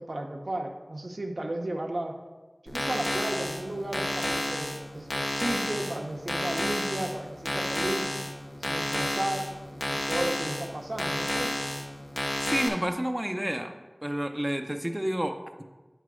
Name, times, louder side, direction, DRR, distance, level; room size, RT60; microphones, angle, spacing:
voice 1, 0.0-2.1 2.6-8.1 8.7-11.6, right 1 dB, 85° right, 2 dB, 0.7 m, -34 dB
sound 1, 2.7-12.7, left 1 dB, 75° left, 0.9 m, -31 dB
voice 2, 12.4-13.8 14.0-15.6, equal, 20° right, 5 dB, 0.5 m, -30 dB
8.4 x 3.1 x 6.1 m, 1.2 s
wide cardioid pair, 40°, 0 cm